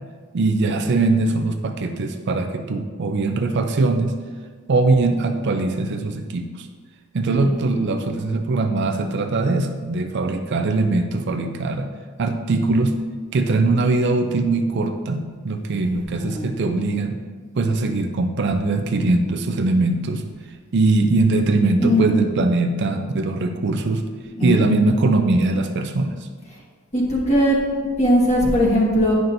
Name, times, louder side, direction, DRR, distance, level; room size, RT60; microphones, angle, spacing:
voice 1, 0.3-4.2 4.7-6.7 7.1-11.9 12.2-13.0 13.3-17.2 17.5-20.2 20.7-24.0 24.4-26.3, right 3 dB, 50° right, 5 dB, 0.4 m, -21 dB
voice 2, 15.8-16.5 21.8-22.3 24.4-24.6 26.9-29.1, equal, 30° left, -4 dB, 1.5 m, -20 dB
9.3 x 5.7 x 2.6 m, 1.6 s
head